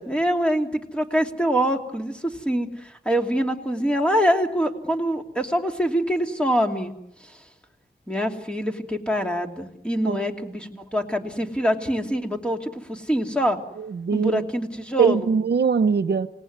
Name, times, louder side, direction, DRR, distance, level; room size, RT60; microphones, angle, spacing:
voice 1, 0.0-6.9 7.2-7.3 8.1-13.6 14.1-15.3, equal, 5° left, 3 dB, 2.8 m, -25 dB
voice 2, 13.8-14.4 15.0-16.3, right 6 dB, 80° right, 13 dB, 0.9 m, -21 dB
28.0 x 18.5 x 9.5 m, 0.84 s
wide cardioid pair, 90°, 17 cm